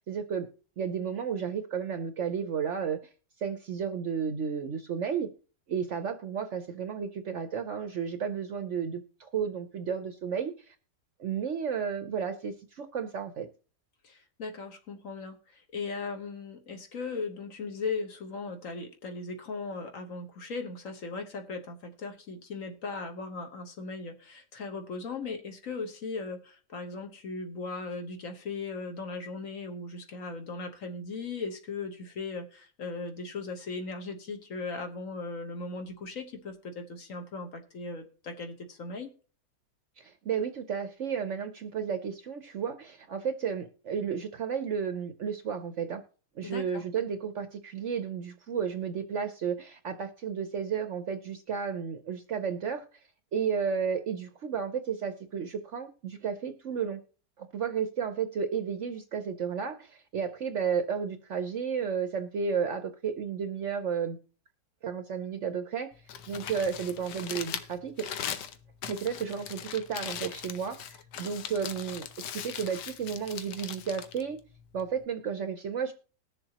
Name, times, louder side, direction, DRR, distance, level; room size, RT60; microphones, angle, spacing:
voice 1, 0.1-0.5 0.8-3.0 3.4-5.3 5.7-10.7 11.2-13.5 40.0-46.0 46.4-52.8 53.3-57.0 57.4-64.2 64.8-65.9 66.3-68.1 68.9-72.1 72.3-74.4 74.7-75.9, right 7 dB, 60° right, 8 dB, 0.9 m, -32 dB
voice 2, 14.0-39.1 46.4-46.8, left 4 dB, 55° left, 5 dB, 1.4 m, -38 dB
Crumpling crinkling, 65.9-75.1, left 9 dB, 80° left, 1.3 m, -40 dB
20.5 x 6.8 x 2.9 m, 0.38 s
omnidirectional pair, 1.8 m